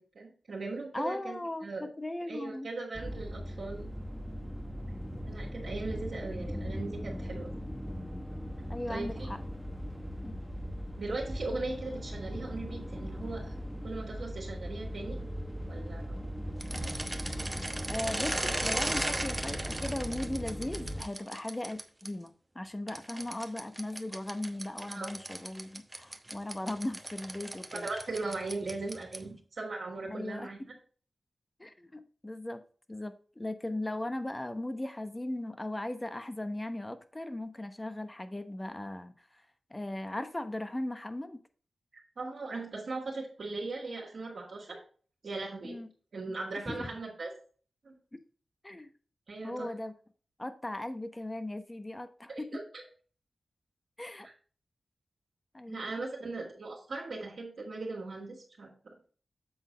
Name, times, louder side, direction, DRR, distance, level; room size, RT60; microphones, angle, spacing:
voice 1, 0.0-1.9 2.3-3.9 5.3-7.5 8.9-9.3 11.0-13.5 13.8-15.2 15.6-16.2 24.9-25.1 27.7-30.6 42.2-44.8 45.2-45.8 46.1-47.3 47.8-47.9 49.3-49.7 52.3-52.8 54.2-54.3 55.7-58.9, right 3 dB, 70° right, 2.0 m, -39 dB
voice 2, 0.9-2.7 8.7-9.4 10.2-10.3 17.9-27.9 30.1-30.7 31.6-32.6 32.9-39.4 39.7-41.4 45.6-45.9 46.7-46.9 48.1-48.2 48.6-48.9 49.4-49.9 50.4-52.6 54.0-54.3 55.5-55.9, left 1 dB, 20° left, 0.9 m, -38 dB
sound 1, 2.9-21.0, equal, ahead, 1.1 m, -39 dB
sound 2, 16.6-22.1 22.9-29.4, right 1 dB, 20° right, 0.9 m, -37 dB
7.9 x 3.9 x 5.0 m
cardioid pair, 50°, 0 cm